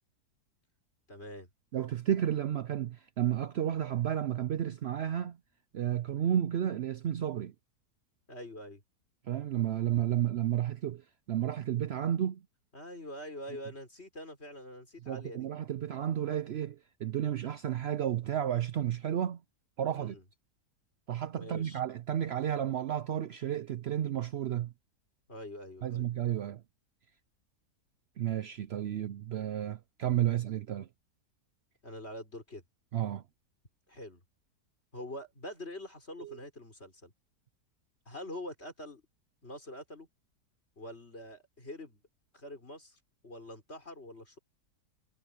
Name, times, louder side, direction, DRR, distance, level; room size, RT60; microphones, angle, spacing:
voice 1, 1.1-1.5 8.3-8.8 12.7-15.5 19.9-20.2 21.3-21.8 25.3-26.1 31.8-32.6 33.9-34.2 34.9-37.1 38.1-39.0 39.4-40.1 40.8-42.0 42.3-44.4, left 1 dB, 40° left, 6.0 m, -45 dB
voice 2, 1.7-5.4 5.7-7.5 9.3-12.4 15.1-19.4 19.8-20.2 21.1-24.7 25.8-26.6 28.2-30.9 32.9-33.2 36.2-36.4, right 10 dB, 85° right, 0.5 m, -32 dB
omnidirectional pair, 1.8 m